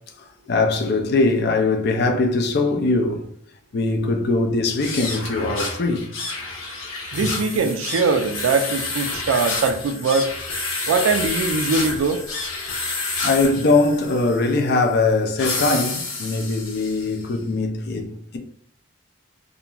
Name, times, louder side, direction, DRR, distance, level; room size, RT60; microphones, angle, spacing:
voice 1, 0.2-3.3 3.7-6.1 7.2-7.3 13.2-18.4, left 3 dB, 50° left, 0.4 m, -21 dB
sound 1, 4.7-17.2, left 3 dB, 75° left, 0.9 m, -29 dB
voice 2, 7.1-10.3 10.9-12.2, right 4 dB, 80° right, 0.3 m, -21 dB
2.9 x 2.5 x 2.3 m
head